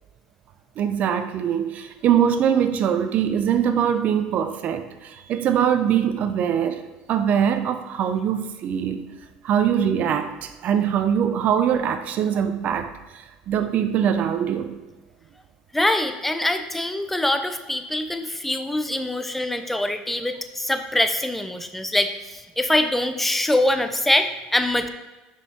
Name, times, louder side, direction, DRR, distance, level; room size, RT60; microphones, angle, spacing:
voice 1, 0.8-6.8 7.1-9.0 9.4-14.7, right 8 dB, 50° right, 9 dB, 0.5 m, -22 dB
voice 2, 15.7-24.9, left 1 dB, 5° left, 8 dB, 0.5 m, -24 dB
5.5 x 4.7 x 4.2 m, 1.2 s
supercardioid pair, 100°, 3 cm